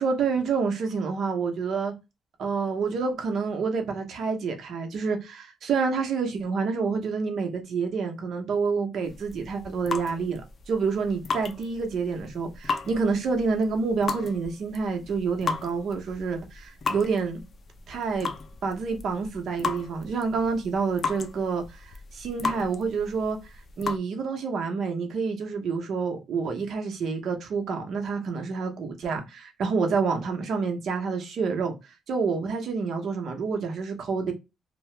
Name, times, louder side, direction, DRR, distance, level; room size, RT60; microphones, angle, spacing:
voice 1, 0.0-1.9 2.4-10.4 10.7-17.4 17.9-18.3 18.6-23.4 23.8-31.7 32.1-34.3, right 5 dB, 65° right, 0.9 m, -28 dB
sound 1, 9.0-24.0, left 4 dB, 45° left, 0.5 m, -36 dB
2.8 x 2.2 x 3.2 m
cardioid pair, 90°, 0 cm